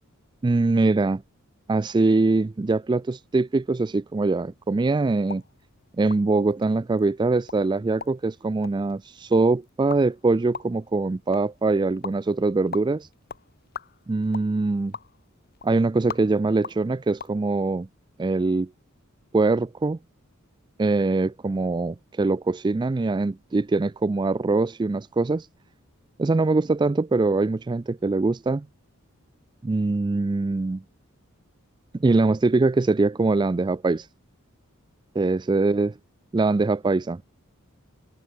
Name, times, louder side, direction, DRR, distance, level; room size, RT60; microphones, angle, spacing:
voice 1, 0.4-1.2 1.7-5.4 6.0-13.1 14.1-14.9 15.6-17.9 18.2-18.7 19.3-20.0 20.8-25.5 26.2-28.7 29.6-30.8 32.0-34.1 35.2-35.9 36.3-37.2, right 3 dB, 20° right, 0.3 m, -23 dB
sound 1, 5.2-17.4, left 5 dB, 45° left, 4.5 m, -43 dB
head